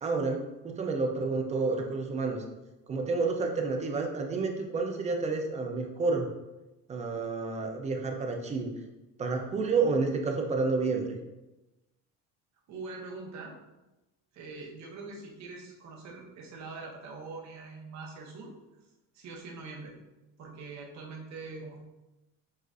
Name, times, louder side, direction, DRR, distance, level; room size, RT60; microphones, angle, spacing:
voice 1, 0.0-2.4 2.9-6.3 6.9-8.7 9.2-11.2, right 4 dB, 20° right, 3 dB, 0.4 m, -30 dB
voice 2, 12.7-13.6 14.3-18.5 19.1-19.9 20.4-21.8, right 3 dB, 50° right, -1 dB, 1.0 m, -43 dB
6.4 x 2.5 x 2.4 m, 1.0 s
cardioid pair, 145°, 35 cm